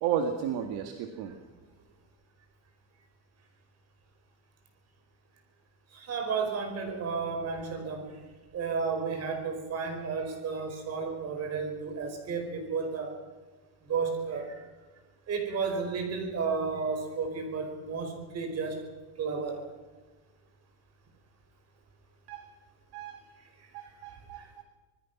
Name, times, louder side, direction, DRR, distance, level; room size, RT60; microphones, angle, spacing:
voice 1, 0.0-1.4 22.3-22.5 22.9-23.2 23.7-24.6, right 8 dB, 50° right, 6 dB, 2.0 m, -33 dB
voice 2, 5.9-8.2 8.5-13.2 13.8-14.7 15.3-18.9 19.2-19.7 23.6-23.7 24.3-24.6, right 5 dB, 30° right, 6 dB, 5.0 m, -33 dB
26.0 x 20.0 x 6.1 m, 1.2 s
cardioid pair, 155°, 48 cm